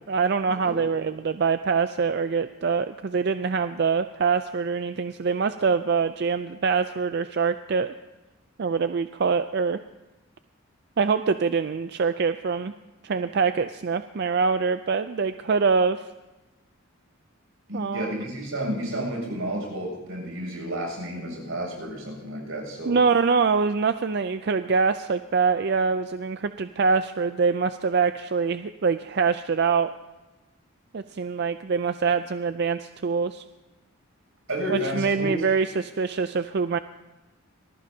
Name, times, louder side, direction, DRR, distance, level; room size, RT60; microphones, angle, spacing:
voice 1, 0.1-7.9 8.6-9.8 11.0-12.7 13.0-16.0 17.7-18.1 22.9-29.9 30.9-33.4 34.7-36.8, right 5 dB, 55° right, 10 dB, 0.4 m, -24 dB
voice 2, 17.7-23.0 34.5-35.3, equal, 85° right, 0 dB, 7.3 m, -31 dB
25.5 x 19.5 x 2.8 m, 1.1 s
head